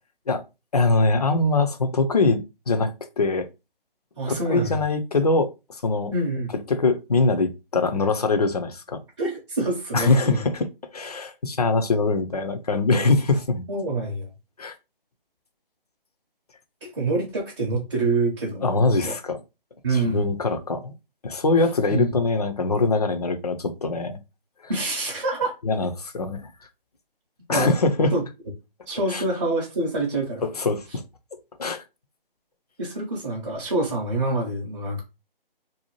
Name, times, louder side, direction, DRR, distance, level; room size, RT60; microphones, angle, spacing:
voice 1, 0.7-2.4 2.7-3.5 4.3-6.1 6.7-9.0 9.9-13.6 14.6-14.8 16.8-16.9 18.6-19.4 19.9-20.9 21.2-24.2 24.6-24.7 25.6-26.5 27.5-28.1 29.1-29.2 30.6-31.0 31.6-31.8, left 3 dB, 45° left, 0.4 m, -23 dB
voice 2, 4.2-4.8 6.1-6.5 9.2-10.5 13.7-14.3 16.8-19.1 19.8-20.3 21.9-22.2 24.7-25.6 27.5-27.7 28.1-28.2 28.9-30.5 32.8-35.0, right 2 dB, 30° right, 0.6 m, -26 dB
2.7 x 2.1 x 2.9 m
figure-of-eight pair, 150°, 29 cm